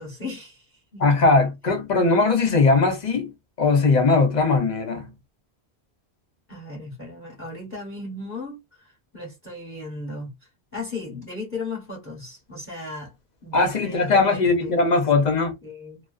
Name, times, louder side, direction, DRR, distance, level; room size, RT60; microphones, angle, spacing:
voice 1, 0.0-1.0 6.5-13.1 13.4-14.7 15.6-16.0, left 2 dB, 10° left, 1.1 m, -36 dB
voice 2, 1.0-3.3 3.6-5.1 13.5-15.6, left 3 dB, 45° left, 0.8 m, -19 dB
2.3 x 2.3 x 2.4 m
omnidirectional pair, 1.1 m